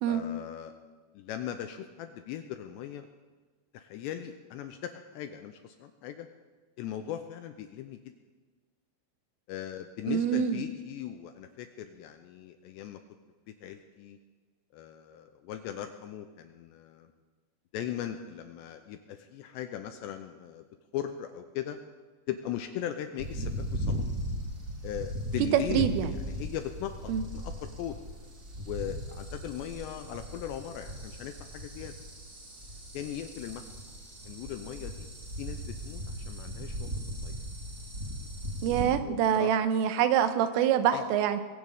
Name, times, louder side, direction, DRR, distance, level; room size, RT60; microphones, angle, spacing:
voice 1, 0.1-0.7 1.1-3.1 3.7-6.3 6.8-8.0 9.5-13.0 13.5-14.2 14.7-17.1 17.7-20.6 20.9-21.8 22.3-24.0 24.8-28.0 28.7-31.9 32.9-34.0 34.2-35.1 35.4-37.4 39.0-39.5 40.9-41.1, left 10 dB, 85° left, 7 dB, 2.6 m, -39 dB
voice 2, 10.1-10.6 25.7-26.1 27.1-27.2 38.6-41.4, right 9 dB, 90° right, 9 dB, 3.5 m, -26 dB
sound 1, 23.2-38.8, equal, 25° right, 2.2 m, -38 dB
22.0 x 16.0 x 3.6 m, 1.4 s
omnidirectional pair, 5.6 m